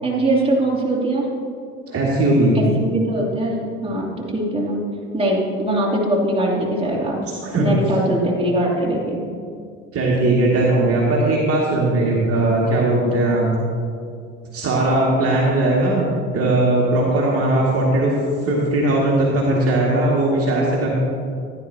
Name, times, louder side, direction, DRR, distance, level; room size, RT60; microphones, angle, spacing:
voice 1, 0.0-1.3 2.5-4.8 5.1-7.2 7.6-9.2, right 1 dB, 15° right, -3 dB, 3.0 m, -21 dB
voice 2, 1.9-2.6 7.4-7.7 9.9-13.6 14.5-18.1 18.4-20.9, right 2 dB, 40° right, -4 dB, 2.4 m, -18 dB
16.0 x 10.5 x 2.9 m, 2.3 s
hypercardioid pair, 65°, 36 cm